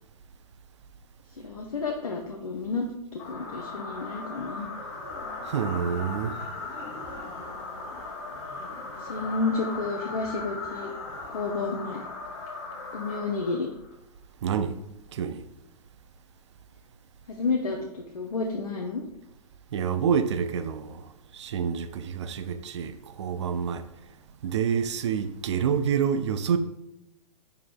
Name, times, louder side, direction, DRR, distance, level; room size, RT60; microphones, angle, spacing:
voice 1, 1.4-2.9 3.1-4.7 9.0-10.9 11.3-12.0 12.9-13.7 17.3-19.0, left 3 dB, 70° left, 0.6 m, -30 dB
sound 1, 3.2-13.9, left 3 dB, 35° left, 1.0 m, -38 dB
voice 2, 5.4-6.5 14.4-14.8 15.1-15.4 19.7-23.9 24.4-26.6, right 7 dB, 50° right, 0.4 m, -28 dB
4.7 x 4.7 x 2.2 m
figure-of-eight pair, 110°, 20 cm